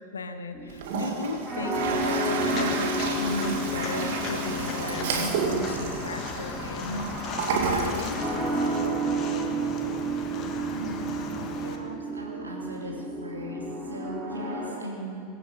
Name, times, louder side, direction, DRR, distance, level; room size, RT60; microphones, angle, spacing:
voice 1, 0.1-7.1 7.5-8.4, left 2 dB, 75° left, 8 dB, 1.1 m, -35 dB
sound 1, 0.5-14.7, right 2 dB, 5° right, 4.4 m, -32 dB
Toilet flush, 0.7-8.9, right 5 dB, 60° right, 1.9 m, -31 dB
Walk footsteps, 2.4-11.8, left 5 dB, 35° left, 1.5 m, -37 dB
voice 2, 10.6-11.2 11.6-15.3, right 1 dB, 80° right, -2 dB, 2.9 m, -38 dB
22.5 x 9.2 x 5.3 m, 2.6 s
figure-of-eight pair, 80°, 0 cm